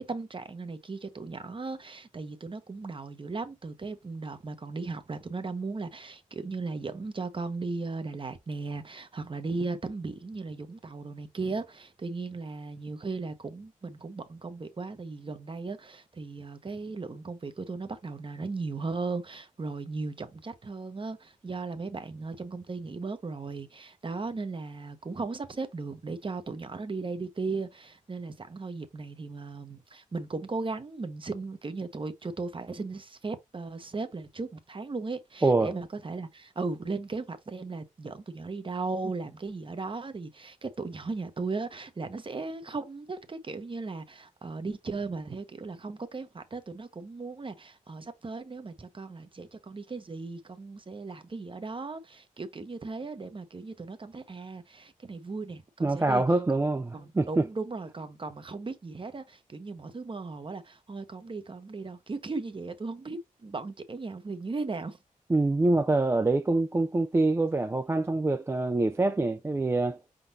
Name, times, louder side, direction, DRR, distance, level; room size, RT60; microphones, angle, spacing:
voice 1, 0.0-56.2 56.9-65.0, right 3 dB, 40° right, 0.9 m, -37 dB
voice 2, 35.4-35.7 55.8-57.4 65.3-70.0, right 2 dB, 20° right, 0.3 m, -25 dB
5.0 x 3.8 x 2.7 m
cardioid pair, 70°, 14 cm